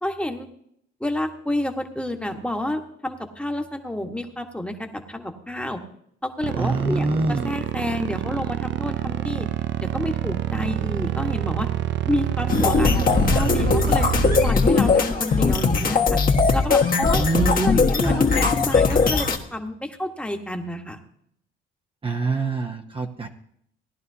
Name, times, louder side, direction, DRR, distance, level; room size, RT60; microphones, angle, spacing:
voice 1, 0.0-0.5 1.0-5.8 6.2-9.5 9.8-11.7 12.0-14.1 14.4-16.2 16.5-17.2 17.5-21.0, left 1 dB, 5° left, 4 dB, 1.4 m, -29 dB
sound 1, 6.4-14.5, right 12 dB, 65° right, 0.5 m, -27 dB
voice 2, 6.6-7.5 17.1-18.2 22.0-23.3, right 3 dB, 25° right, 3 dB, 0.9 m, -25 dB
sound 2, 12.5-19.4, left 4 dB, 45° left, 1.6 m, -19 dB
18.0 x 11.0 x 2.8 m, 0.71 s
cardioid pair, 90°, 20 cm